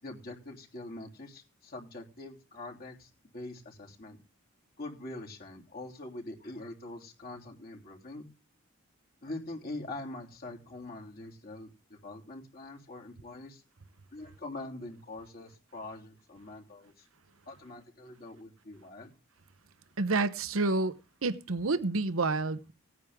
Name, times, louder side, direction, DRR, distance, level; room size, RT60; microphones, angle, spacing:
voice 1, 0.0-4.2 4.8-8.3 9.2-13.6 14.1-17.1 17.5-19.1, left 2 dB, 45° left, 3.2 m, -44 dB
voice 2, 20.0-20.9 21.2-22.7, right 3 dB, 75° right, 1.0 m, -29 dB
17.5 x 9.5 x 3.6 m
head